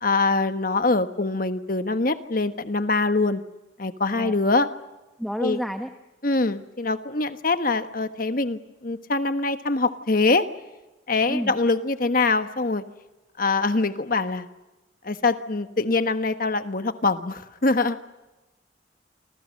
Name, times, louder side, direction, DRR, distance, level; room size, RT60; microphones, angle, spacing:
voice 1, 0.0-3.4 3.8-4.7 5.4-5.6 6.2-10.5 11.1-12.8 13.4-14.5 15.0-18.0, left 3 dB, 50° left, 9 dB, 1.3 m, -23 dB
voice 2, 5.2-5.9 11.3-11.6, equal, ahead, 5 dB, 1.0 m, -29 dB
28.5 x 26.0 x 6.5 m, 1.1 s
head